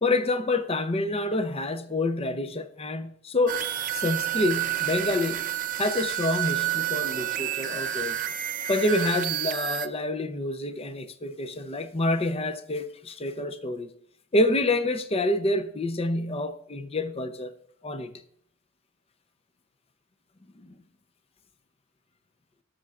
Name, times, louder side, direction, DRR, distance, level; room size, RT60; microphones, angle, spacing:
voice 1, 0.0-3.6 3.9-5.5 5.8-8.2 8.7-13.9 14.3-17.5 17.8-18.1 20.6-20.7, left 2 dB, 30° left, 0.6 m, -27 dB
sound 1, 3.5-9.9, right 12 dB, 40° right, 0.5 m, -29 dB
18.5 x 6.4 x 2.4 m
head